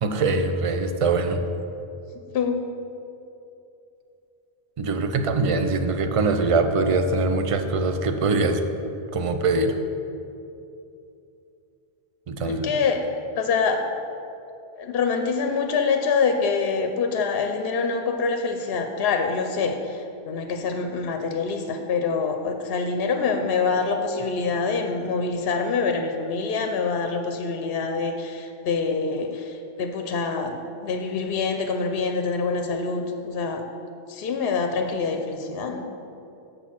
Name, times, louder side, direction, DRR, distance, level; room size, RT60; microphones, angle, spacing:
voice 1, 0.0-1.4 4.8-8.6 9.1-9.8 12.3-12.7, right 3 dB, 50° right, 7 dB, 0.4 m, -23 dB
voice 2, 12.6-13.0 13.4-13.8 14.8-30.6 30.8-33.6 34.1-35.9, left 4 dB, 65° left, 5 dB, 0.8 m, -25 dB
6.8 x 6.3 x 5.8 m, 2.7 s
omnidirectional pair, 1.1 m